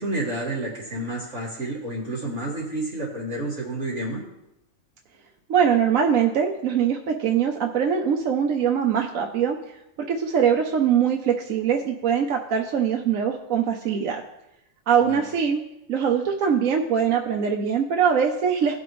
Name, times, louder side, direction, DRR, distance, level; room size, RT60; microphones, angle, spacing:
voice 1, 0.0-4.2 15.0-15.2, right 1 dB, 55° right, -4 dB, 2.1 m, -30 dB
voice 2, 5.5-9.6 10.1-14.2 14.9-15.6 15.9-18.8, right 7 dB, 70° right, 2 dB, 1.1 m, -22 dB
18.0 x 6.0 x 3.1 m, 0.90 s
omnidirectional pair, 1.5 m